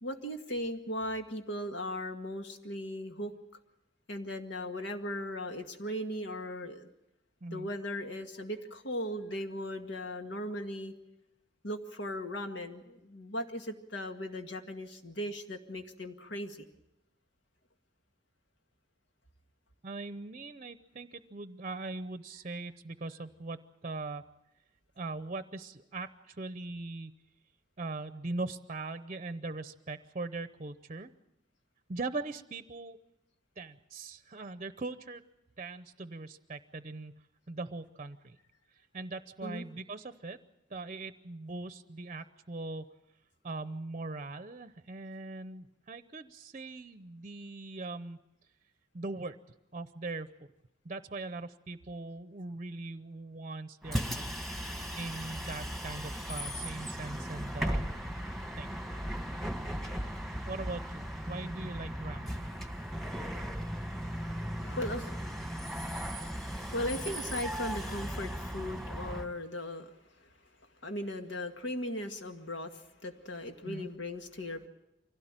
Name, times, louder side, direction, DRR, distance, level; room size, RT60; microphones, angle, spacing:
voice 1, 0.0-3.3 4.1-6.9 7.5-10.9 11.6-16.6 39.4-39.7 64.4-65.9 66.7-70.3 70.8-74.7, left 1 dB, 75° left, 5 dB, 2.0 m, -38 dB
voice 2, 19.8-24.2 25.0-27.1 27.8-31.1 31.9-33.0 33.6-35.2 35.6-37.2 37.5-38.4 38.9-40.4 40.7-42.9 43.4-48.2 48.9-49.4 49.7-50.3 50.8-54.4 55.0-57.8 58.6-58.7 60.5-62.3 73.6-73.9, right 3 dB, 40° right, 12 dB, 0.7 m, -40 dB
Bus, 53.8-69.3, equal, ahead, 1.6 m, -37 dB
25.0 x 16.5 x 9.0 m, 0.88 s
head